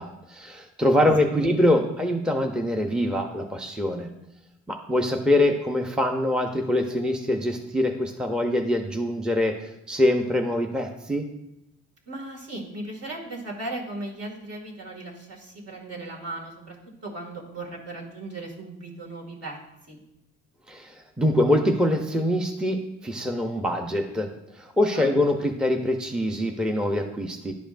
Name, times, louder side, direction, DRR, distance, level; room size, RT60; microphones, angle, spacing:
voice 1, 0.0-4.1 4.7-11.3 20.7-24.3 24.5-27.5, left 1 dB, 5° right, 3 dB, 0.6 m, -24 dB
voice 2, 12.1-16.8 17.0-19.6 19.9-20.0 24.9-25.1, right 2 dB, 55° right, -1 dB, 2.1 m, -37 dB
11.0 x 5.0 x 2.6 m, 0.87 s
cardioid pair, 90°, 30 cm